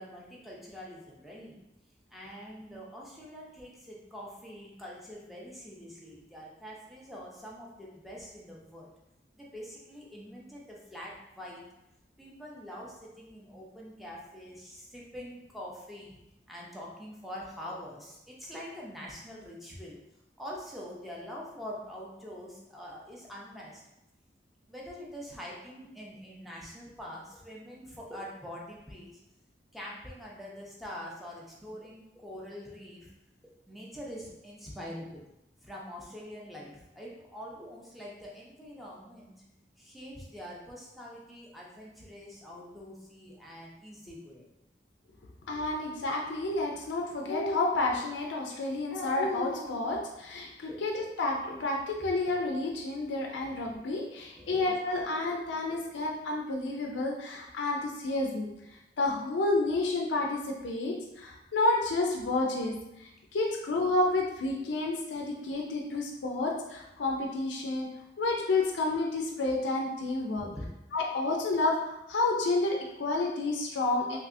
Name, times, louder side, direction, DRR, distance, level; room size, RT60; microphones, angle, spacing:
voice 1, 0.0-1.6 2.1-8.9 9.3-11.6 12.2-16.2 16.5-20.0 20.4-23.8 24.7-29.1 29.7-33.1 33.4-35.2 35.6-39.4 39.8-44.5 50.7-50.8 52.0-52.3 54.3-54.6 54.9-55.0 55.8-56.0 70.3-70.8, equal, ahead, -4 dB, 0.5 m, -44 dB
voice 2, 45.5-58.5 59.0-67.9 68.2-70.5 70.9-74.2, left 2 dB, 80° left, 0 dB, 0.4 m, -30 dB
3.3 x 2.8 x 2.5 m, 0.89 s
head